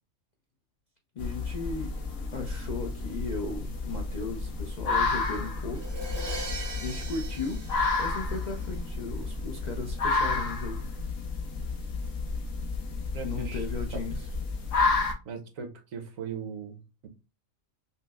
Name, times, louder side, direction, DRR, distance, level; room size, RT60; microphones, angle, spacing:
voice 1, 1.1-2.0 2.3-5.9 6.8-7.7 8.0-10.9 13.2-14.3, left 3 dB, 65° left, 0.4 m, -36 dB
sound 1, 1.2-15.1, left 3 dB, 80° left, 1.2 m, -31 dB
Crash cymbal, 5.7-8.7, right 2 dB, 25° right, 0.5 m, -40 dB
voice 2, 13.1-13.6 13.9-14.0 15.2-17.1, right 6 dB, 80° right, 1.2 m, -39 dB
5.4 x 2.0 x 2.3 m
omnidirectional pair, 1.4 m